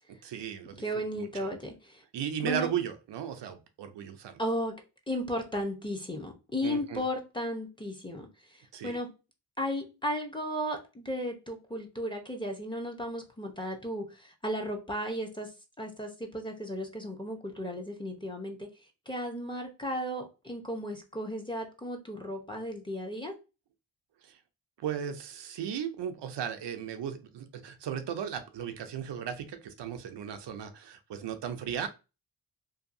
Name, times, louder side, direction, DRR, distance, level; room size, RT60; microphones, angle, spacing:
voice 1, 0.2-0.8 1.2-1.5 2.1-4.4 6.6-7.0 8.7-9.0 24.2-24.4 24.8-31.9, right 9 dB, 80° right, 0.5 m, -36 dB
voice 2, 0.8-2.0 2.4-2.7 4.4-4.7 5.1-8.3 8.5-9.1 9.6-15.5 15.8-18.7 19.1-23.3, equal, 10° left, 0.7 m, -35 dB
2.6 x 2.3 x 2.5 m
cardioid pair, 45°, 42 cm